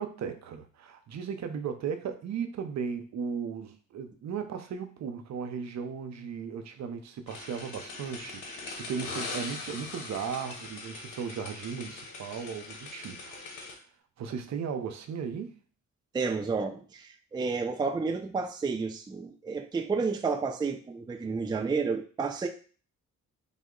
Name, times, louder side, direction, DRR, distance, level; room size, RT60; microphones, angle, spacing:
voice 1, 0.0-13.7 14.2-15.5, right 6 dB, 60° right, 7 dB, 0.6 m, -36 dB
sound 1, 7.3-13.7, left 3 dB, 75° left, 0.9 m, -41 dB
voice 2, 16.1-22.5, right 4 dB, 15° right, 6 dB, 0.3 m, -31 dB
3.6 x 2.1 x 3.7 m, 0.40 s
cardioid pair, 70°, 31 cm